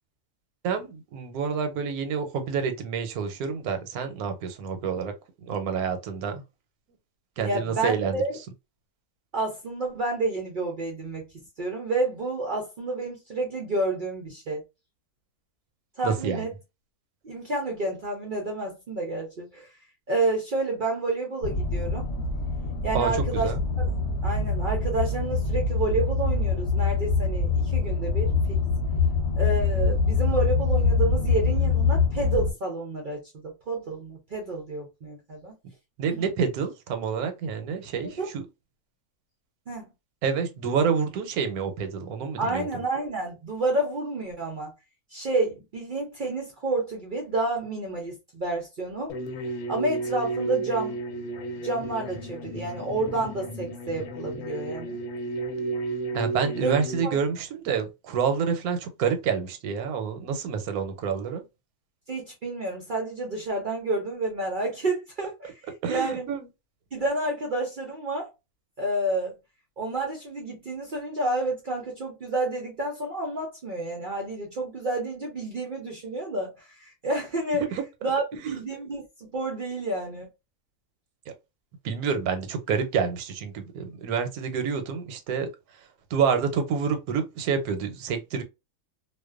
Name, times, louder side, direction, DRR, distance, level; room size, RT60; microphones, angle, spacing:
voice 1, 0.6-5.1 5.4-6.4 7.4-8.2 16.0-16.5 22.9-23.6 36.0-38.4 40.2-42.7 56.1-61.4 65.8-66.5 77.6-77.8 78.4-78.6 81.3-81.4 81.8-88.4, right 6 dB, 85° right, 1.1 m, -28 dB
voice 2, 7.4-8.4 9.3-11.3 11.6-14.6 16.0-16.5 17.2-19.7 20.1-22.1 22.8-23.5 23.8-23.9 24.2-28.6 29.3-35.6 36.2-36.3 38.2-38.3 39.7-39.9 42.4-44.7 45.1-49.1 49.7-51.0 51.6-55.0 56.6-56.7 57.0-57.2 62.1-65.6 65.9-66.3 66.9-68.3 68.8-69.4 69.8-77.6 78.0-80.3, right 2 dB, 65° right, 0.5 m, -29 dB
sound 1, 21.4-32.5, left 4 dB, 55° left, 0.9 m, -24 dB
sound 2, 49.1-57.0, right 2 dB, 85° left, 1.1 m, -33 dB
2.5 x 2.1 x 2.3 m
omnidirectional pair, 1.5 m